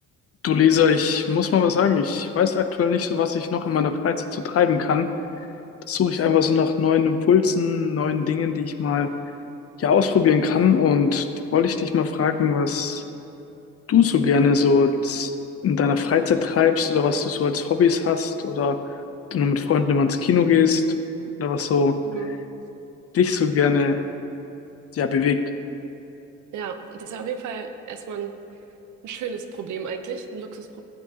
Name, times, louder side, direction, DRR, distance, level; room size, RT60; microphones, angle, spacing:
voice 1, 0.4-5.1 5.9-9.1 9.8-11.3 11.5-13.0 13.9-15.3 15.6-18.8 19.3-20.9 21.4-22.0 23.1-24.0 24.9-25.4, left 6 dB, 50° left, 9 dB, 0.7 m, -20 dB
voice 2, 26.5-28.3 29.0-30.8, right 6 dB, 75° right, 7 dB, 0.8 m, -33 dB
14.5 x 8.5 x 2.9 m, 2.9 s
cardioid pair, 90°, 30 cm